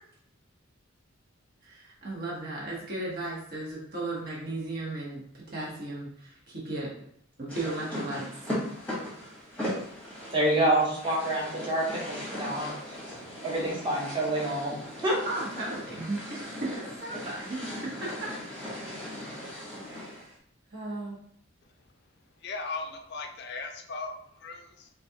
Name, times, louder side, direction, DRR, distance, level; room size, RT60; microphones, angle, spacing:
voice 1, 1.6-6.9 7.4-8.2 15.2-18.3 19.8-20.3 20.7-21.2, right 2 dB, 50° right, -5 dB, 1.0 m, -36 dB
sound 1, 7.5-20.3, left 1 dB, 10° left, 0.9 m, -38 dB
voice 2, 10.3-12.7 13.1-14.7 15.0-15.2, right 1 dB, 25° right, -4 dB, 0.9 m, -27 dB
voice 3, 22.4-24.9, left 3 dB, 55° left, 5 dB, 0.4 m, -38 dB
3.9 x 2.3 x 2.7 m, 0.67 s
head